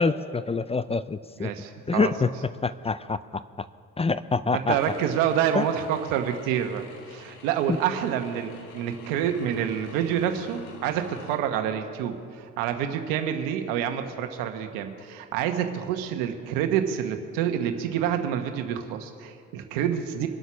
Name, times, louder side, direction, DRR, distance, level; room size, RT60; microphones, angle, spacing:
voice 1, 0.0-1.5 1.9-2.3 2.6-3.7 4.0-4.8 5.6-5.7 7.7-7.8, left 4 dB, 20° left, 15 dB, 0.5 m, -26 dB
voice 2, 1.4-2.1 4.5-20.3, right 9 dB, 90° right, 6 dB, 1.2 m, -28 dB
sound 1, 4.8-11.4, left 5 dB, 90° left, 1.6 m, -48 dB
23.5 x 8.1 x 6.2 m, 2.3 s
supercardioid pair, 65°, 33 cm